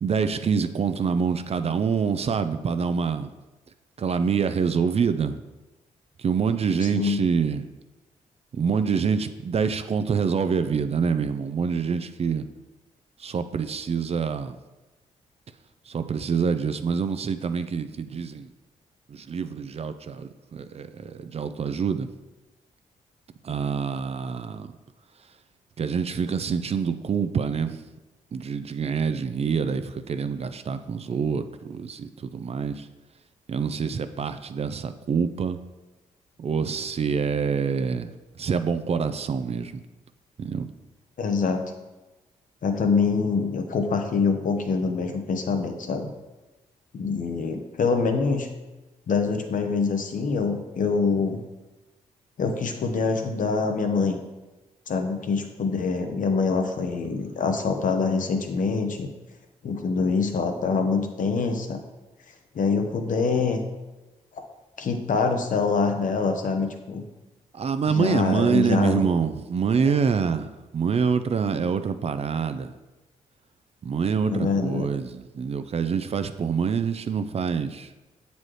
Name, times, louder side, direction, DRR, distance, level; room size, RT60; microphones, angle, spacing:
voice 1, 0.0-3.3 4.0-5.4 6.2-7.6 8.5-12.5 13.2-14.6 15.9-18.5 19.1-22.1 23.4-24.8 25.8-27.8 28.3-32.9 33.5-35.6 36.4-38.1 38.4-39.8 40.4-40.7 67.5-72.7 73.8-77.9, right 6 dB, 40° right, 10 dB, 0.4 m, -26 dB
voice 2, 41.2-41.6 42.6-46.1 46.9-48.5 49.1-51.4 52.4-54.2 54.9-59.1 59.6-61.8 62.5-63.6 64.8-67.0 67.9-69.0 74.3-74.9, left 4 dB, 60° left, 5 dB, 0.8 m, -25 dB
7.4 x 4.1 x 3.2 m, 1.1 s
supercardioid pair, 50°, 15 cm